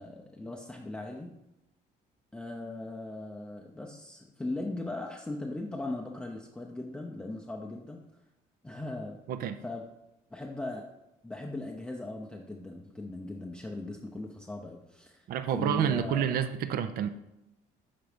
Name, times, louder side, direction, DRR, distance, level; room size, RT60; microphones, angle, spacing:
voice 1, 0.0-1.3 2.3-8.0 8.6-9.2 9.6-9.8 10.3-10.8 11.2-15.3 15.5-16.3, left 2 dB, 5° left, -1 dB, 0.6 m, -38 dB
voice 2, 15.3-17.1, right 9 dB, 60° right, 12 dB, 0.5 m, -29 dB
5.9 x 4.0 x 4.9 m, 0.90 s
cardioid pair, 110°, 17 cm